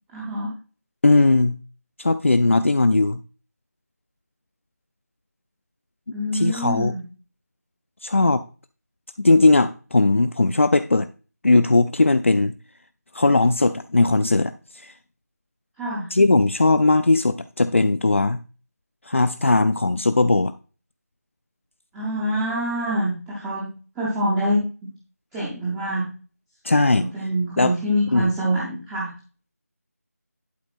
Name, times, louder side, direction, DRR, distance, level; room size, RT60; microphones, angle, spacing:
voice 1, 0.1-0.5 6.1-7.0 15.8-16.1 21.9-23.7 24.0-24.9 25.3-26.1 26.9-29.1, equal, 5° right, 0.6 m, -25 dB
voice 2, 1.0-1.6 2.0-3.2 6.3-6.9 8.0-8.4 9.2-11.1 11.4-12.5 13.1-14.9 16.1-18.4 19.1-20.5 26.6-27.1 27.6-27.7 28.1-28.3, left 2 dB, 50° left, 0.5 m, -18 dB
11.0 x 5.0 x 4.1 m
figure-of-eight pair, 165°, 9 cm